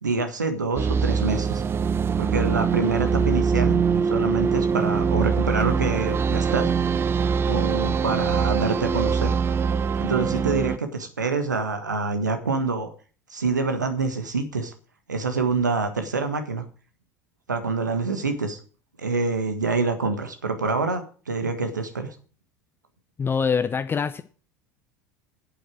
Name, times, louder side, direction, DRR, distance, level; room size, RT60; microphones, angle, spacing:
voice 1, 0.0-1.6 2.2-6.7 7.5-9.3 10.0-12.9 13.3-14.7 15.1-16.6 17.5-18.6 19.0-22.1, right 4 dB, 85° right, 7 dB, 1.5 m, -26 dB
sound 1, 0.8-10.8, right 6 dB, 25° right, 0.5 m, -23 dB
voice 2, 23.2-24.2, left 6 dB, 25° left, 9 dB, 0.7 m, -24 dB
8.7 x 8.4 x 6.2 m, 0.40 s
figure-of-eight pair, 75°, 10 cm